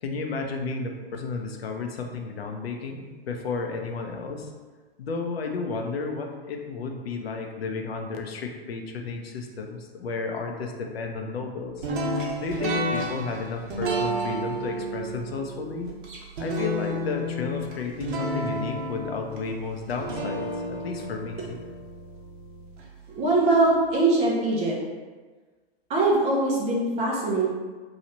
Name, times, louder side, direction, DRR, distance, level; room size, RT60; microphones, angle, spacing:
voice 1, 0.0-4.5 5.0-11.9 12.4-15.9 16.4-21.6, left 4 dB, 70° left, 3 dB, 0.7 m, -32 dB
sound 1, 11.8-22.9, right 1 dB, 50° right, 1.0 m, -31 dB
voice 2, 23.1-24.8 25.9-27.5, right 2 dB, 20° right, -3 dB, 0.6 m, -22 dB
3.1 x 2.4 x 4.1 m, 1.4 s
hypercardioid pair, 115°, 31 cm